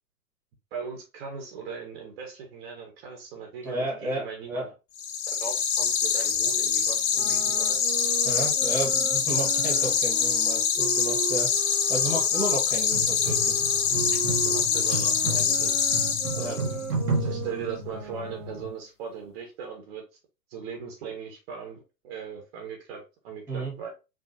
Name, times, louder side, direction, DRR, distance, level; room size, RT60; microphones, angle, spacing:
voice 1, 0.7-4.7 5.4-7.8 14.4-16.0 16.4-16.7 17.2-20.0 20.5-23.9, right 6 dB, 40° right, 1.4 m, -39 dB
voice 2, 3.6-4.7 8.2-11.5 11.9-13.6 16.3-16.5 23.5-23.7, right 1 dB, 5° right, 1.9 m, -32 dB
sound 1, 5.0-16.8, left 7 dB, 35° left, 1.0 m, -25 dB
sound 2, 7.0-12.6 13.2-18.8, right 9 dB, 70° right, 1.2 m, -38 dB
sound 3, 12.9-18.7, right 2 dB, 85° right, 1.5 m, -33 dB
5.1 x 3.4 x 2.9 m
figure-of-eight pair, 115°, 45 cm